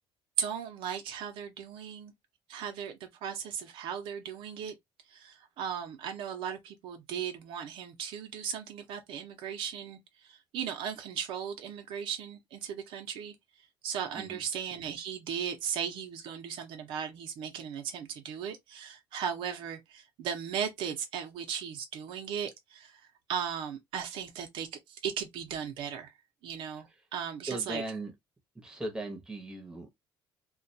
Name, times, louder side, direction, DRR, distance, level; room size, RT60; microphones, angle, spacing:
voice 1, 0.4-2.1 2.5-4.7 5.1-13.3 13.8-23.0 23.3-26.1 26.4-27.8, right 8 dB, 75° right, 0.6 m, -37 dB
voice 2, 27.5-28.1 28.6-29.9, right 2 dB, 5° right, 0.8 m, -38 dB
2.3 x 2.2 x 2.6 m
cardioid pair, 145°, 9 cm